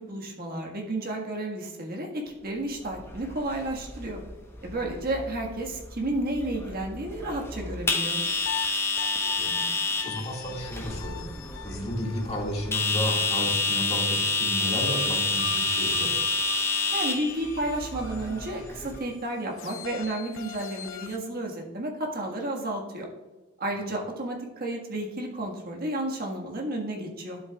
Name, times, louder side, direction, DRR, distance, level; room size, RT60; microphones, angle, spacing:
voice 1, 0.0-4.2 4.6-8.2 16.9-23.1 23.6-27.4, right 1 dB, 45° right, 0 dB, 1.6 m, -32 dB
sound 1, 2.8-19.0, left 3 dB, 10° left, 0.9 m, -29 dB
vintage radio type sounds, 8.1-13.7 14.6-21.2, left 7 dB, 65° left, 0.8 m, -42 dB
voice 2, 9.0-11.3 11.6-16.1, equal, 30° left, -1 dB, 1.9 m, -33 dB
11.5 x 7.9 x 2.3 m, 1.2 s
head